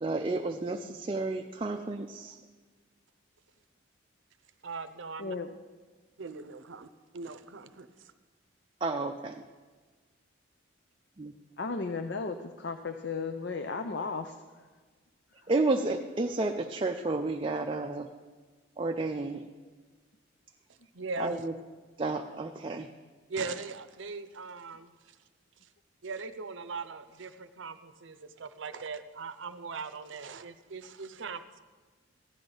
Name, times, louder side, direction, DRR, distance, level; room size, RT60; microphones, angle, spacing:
voice 1, 0.0-2.4 8.8-9.4 11.2-11.3 15.5-18.1 18.8-19.4 21.2-21.5 22.0-22.9, right 3 dB, 25° right, 3 dB, 0.4 m, -31 dB
voice 2, 4.6-5.3 6.2-6.9 7.1-7.9 20.9-21.5 23.3-24.9 26.0-31.6, right 4 dB, 70° right, 11 dB, 0.6 m, -40 dB
voice 3, 11.6-14.4, left 4 dB, 60° left, 8 dB, 0.5 m, -34 dB
15.5 x 10.5 x 3.9 m, 1.4 s
head